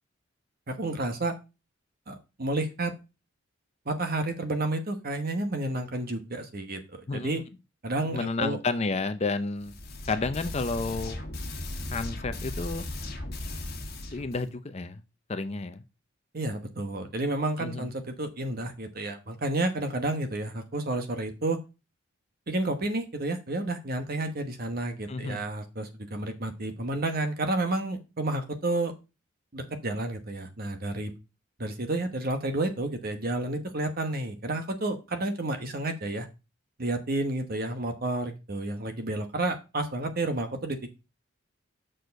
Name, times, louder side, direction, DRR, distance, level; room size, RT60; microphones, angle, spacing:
voice 1, 0.7-1.3 2.1-2.9 3.9-7.4 7.8-8.6 16.3-21.6 22.5-28.9 29.5-31.1 31.6-36.3 36.8-40.9, right 2 dB, 50° right, 7 dB, 1.1 m, -31 dB
voice 2, 8.1-9.7 10.1-11.2 11.9-12.9 14.1-15.0 15.3-15.8 17.6-17.9 25.1-25.4, left 3 dB, 30° left, 10 dB, 0.5 m, -31 dB
sound 1, 9.6-14.5, left 1 dB, 50° left, 1.8 m, -37 dB
6.4 x 4.6 x 5.2 m, 0.28 s
head